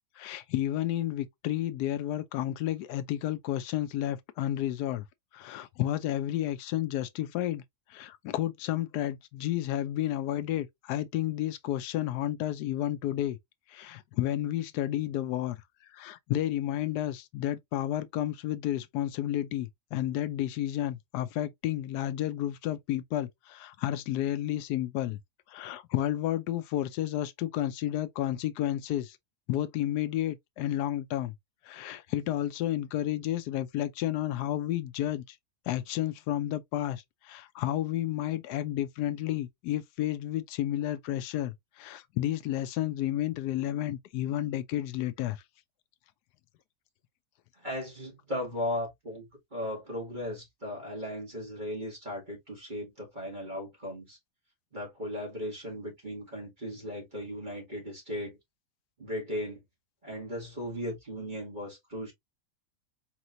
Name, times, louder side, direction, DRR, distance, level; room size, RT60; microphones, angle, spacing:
voice 1, 0.2-5.1 5.3-7.6 7.9-13.4 13.7-15.6 15.9-25.2 25.5-29.2 29.5-31.3 31.6-35.4 35.7-45.4, left 13 dB, 90° left, 1.2 m, -31 dB
voice 2, 47.6-54.2 54.7-58.4 59.0-59.6 60.0-62.1, left 1 dB, 30° right, 1.9 m, -37 dB
4.7 x 3.0 x 2.6 m
omnidirectional pair, 1.7 m